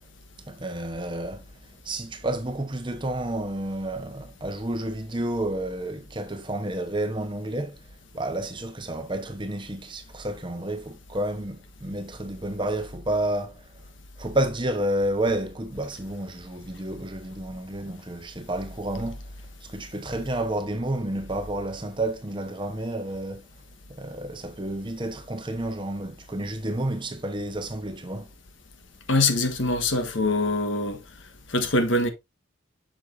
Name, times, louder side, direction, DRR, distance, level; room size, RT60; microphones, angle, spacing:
voice 1, 0.5-1.5 1.8-7.8 8.1-13.7 14.2-19.3 19.6-23.5 23.9-28.3, right 1 dB, 25° right, 0.9 m, -30 dB
voice 2, 29.1-31.0 31.5-32.1, left 2 dB, 65° left, 1.3 m, -23 dB
7.7 x 6.4 x 2.6 m
head